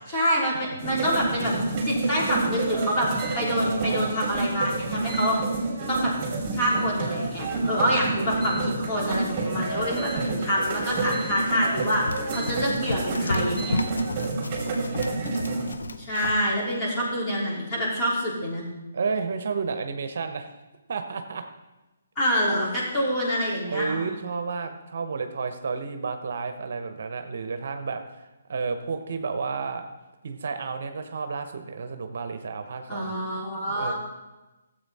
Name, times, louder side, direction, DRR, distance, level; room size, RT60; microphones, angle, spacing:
voice 1, 0.1-1.5 1.8-3.1 3.4-5.4 5.9-6.1 6.5-12.1 12.3-13.8 16.0-18.7 22.2-24.0 32.9-33.9, equal, 20° left, -6 dB, 3.5 m, -26 dB
sound 1, 0.8-15.7, right 3 dB, 25° right, 3.0 m, -29 dB
sound 2, 3.1-3.4 5.0-5.3 6.6-6.9 8.4-8.7 9.9-10.2 11.1-11.4 12.3-12.6 13.5-13.8, right 4 dB, 5° right, 2.5 m, -41 dB
voice 2, 3.4-4.1 7.8-8.7 14.2-16.0 18.9-20.5 20.9-21.4 23.7-28.2 28.5-29.9 30.2-33.1 33.7-33.9, right 4 dB, 60° right, 8 dB, 0.9 m, -32 dB
Run, 11.8-16.5, left 3 dB, 80° left, 0.7 m, -34 dB
13.0 x 7.9 x 4.2 m, 1.1 s
hypercardioid pair, 145°, 0 cm